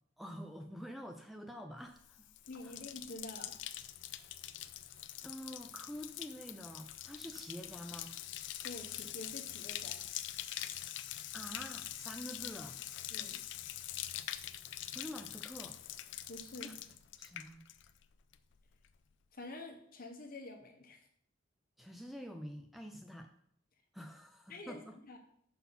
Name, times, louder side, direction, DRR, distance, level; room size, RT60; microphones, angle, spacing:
voice 1, 0.2-2.3 2.6-2.7 5.2-8.1 11.3-12.8 14.9-15.8 16.6-16.8 17.2-17.6 21.8-23.3 23.9-25.0, equal, ahead, 4 dB, 0.4 m, -47 dB
Bathtub (filling or washing), 2.0-18.1 18.3-18.9, left 13 dB, 65° left, 0.4 m, -44 dB
voice 2, 2.5-3.5 8.6-10.0 13.1-13.4 16.3-16.7 19.3-21.0 24.5-25.2, left 2 dB, 50° left, 3 dB, 1.1 m, -48 dB
5.6 x 4.1 x 5.7 m, 0.67 s
head